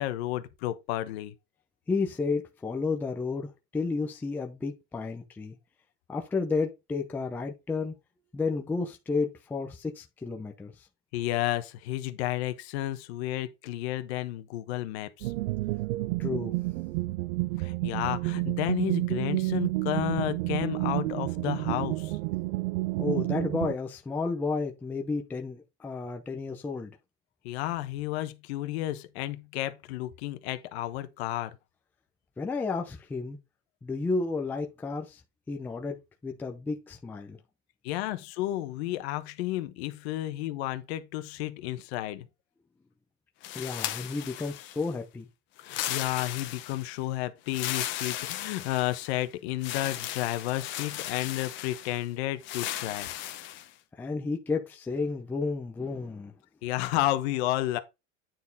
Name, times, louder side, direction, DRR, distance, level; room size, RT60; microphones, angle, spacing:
voice 1, 0.0-1.3 11.1-15.3 17.6-22.2 27.4-31.6 37.8-42.3 45.6-53.1 56.6-57.8, left 15 dB, 55° left, 1.2 m, -32 dB
voice 2, 1.9-5.6 6.1-7.9 8.3-10.9 16.2-16.5 23.0-26.9 32.4-33.4 33.8-35.2 35.5-37.4 43.5-45.3 54.0-56.3, left 4 dB, 5° left, 0.6 m, -32 dB
sound 1, 15.2-23.7, right 21 dB, 65° right, 0.5 m, -30 dB
sound 2, 43.4-44.9 45.6-46.9 47.5-49.1 49.6-52.0 52.4-53.7, left 13 dB, 30° left, 1.0 m, -36 dB
9.3 x 4.3 x 4.0 m
supercardioid pair, 165°, 38 cm